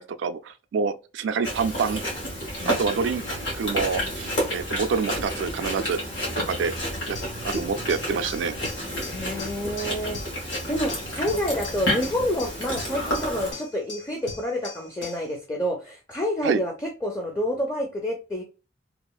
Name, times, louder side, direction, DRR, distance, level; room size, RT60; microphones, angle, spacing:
voice 1, 0.0-2.0 2.7-3.2 3.5-6.0 6.5-6.7 7.1-7.2 7.4-8.6 16.4-16.6, right 5 dB, 70° right, 0.3 m, -27 dB
Chewing mastication, 1.4-13.5, equal, 80° left, 1.4 m, -30 dB
sound 1, 7.1-15.3, left 3 dB, 60° left, 0.9 m, -41 dB
voice 2, 9.0-10.2 10.7-18.4, equal, 15° left, 0.4 m, -28 dB
2.8 x 2.4 x 2.3 m
head